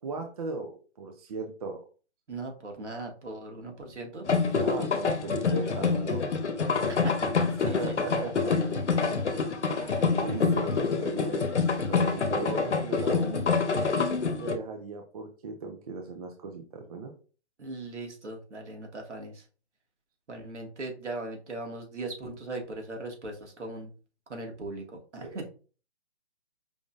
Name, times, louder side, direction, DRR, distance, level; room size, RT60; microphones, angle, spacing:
voice 1, 0.0-1.8 4.5-6.4 7.6-8.7 9.7-11.5 11.9-17.1 25.2-25.5, right 4 dB, 35° right, 4 dB, 0.6 m, -38 dB
voice 2, 2.3-4.3 6.9-8.6 17.6-19.4 20.3-23.9 24.3-25.5, right 2 dB, 85° right, 2 dB, 1.7 m, -39 dB
sound 1, 4.3-14.6, left 5 dB, 85° left, 1.0 m, -27 dB
5.2 x 3.6 x 2.4 m, 0.37 s
hypercardioid pair, 150°, 34 cm